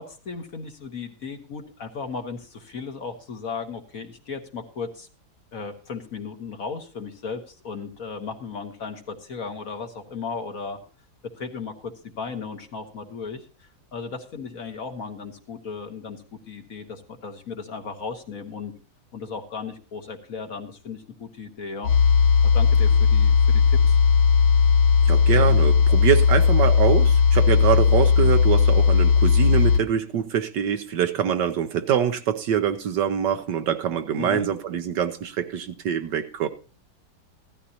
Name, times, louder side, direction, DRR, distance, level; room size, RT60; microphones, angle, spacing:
voice 1, 0.0-5.1 5.5-10.8 11.4-18.7 19.1-22.0 22.4-24.0 34.2-34.5, left 5 dB, 50° left, 1.5 m, -36 dB
sound 1, 21.8-29.8, left 6 dB, 75° left, 0.6 m, -17 dB
voice 2, 25.0-36.5, right 9 dB, 70° right, 1.3 m, -24 dB
16.0 x 13.0 x 2.8 m
omnidirectional pair, 2.2 m